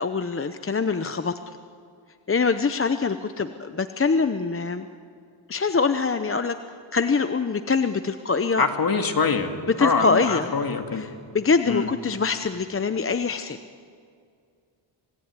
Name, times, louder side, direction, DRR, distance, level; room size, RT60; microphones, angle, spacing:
voice 1, 0.0-1.3 2.3-4.9 5.5-6.6 6.9-8.6 9.8-10.5 10.9-13.6, left 4 dB, 30° left, 9 dB, 0.8 m, -24 dB
voice 2, 8.6-9.5 9.8-11.0 11.7-11.9, left 4 dB, 45° left, 5 dB, 2.3 m, -24 dB
27.0 x 18.0 x 9.7 m, 2.2 s
wide cardioid pair, 120°, 48 cm